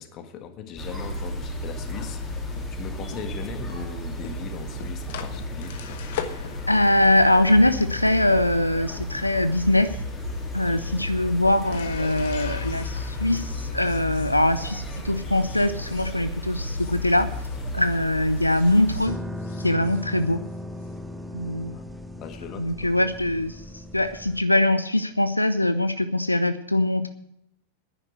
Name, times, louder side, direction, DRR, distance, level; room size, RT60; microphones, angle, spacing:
voice 1, 0.0-2.2 2.7-5.8 10.7-11.1 11.8-12.3 21.6-21.9 22.1-23.1, left 7 dB, 35° left, 8 dB, 1.5 m, -39 dB
sound 1, 0.8-19.1, left 1 dB, 15° left, 3.3 m, -33 dB
sound 2, 1.8-18.0 18.3-20.9, left 8 dB, 55° left, 1.2 m, -43 dB
voice 2, 6.7-9.9 10.5-17.3 17.7-19.2 19.6-20.4 21.3-21.7 22.6-23.5 23.9-27.1, left 1 dB, 85° left, 12 dB, 0.5 m, -22 dB
sound 3, 19.1-24.4, left 1 dB, 5° right, 0.8 m, -37 dB
10.0 x 10.0 x 7.9 m, 0.78 s
figure-of-eight pair, 90°, 0 cm